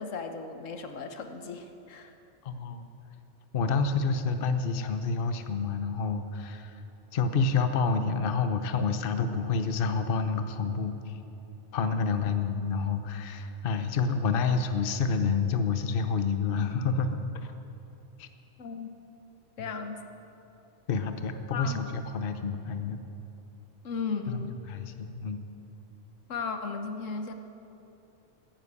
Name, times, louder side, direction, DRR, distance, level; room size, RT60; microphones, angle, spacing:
voice 1, 0.0-2.1 18.6-18.9 19.6-20.0 21.5-21.8 23.8-24.6 26.3-27.3, left 5 dB, 85° left, 7 dB, 1.4 m, -35 dB
voice 2, 2.4-2.9 3.5-6.8 7.1-11.0 11.7-17.5 18.2-18.3 19.6-19.8 20.9-23.0 24.3-25.4, left 4 dB, 50° left, 8 dB, 0.9 m, -28 dB
14.5 x 10.5 x 8.3 m, 2.9 s
omnidirectional pair, 1.3 m